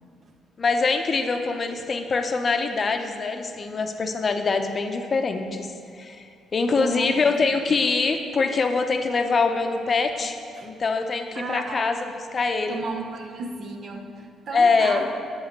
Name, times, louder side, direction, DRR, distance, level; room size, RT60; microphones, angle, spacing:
voice 1, 0.6-5.7 6.0-6.2 6.5-12.1 12.3-12.8 14.5-15.1, left 4 dB, 40° left, 6 dB, 0.7 m, -24 dB
voice 2, 6.8-7.6 10.6-10.7 11.3-11.9 12.7-15.1, right 3 dB, 60° right, 3 dB, 0.9 m, -34 dB
7.4 x 5.0 x 6.6 m, 2.3 s
cardioid pair, 90°, 0 cm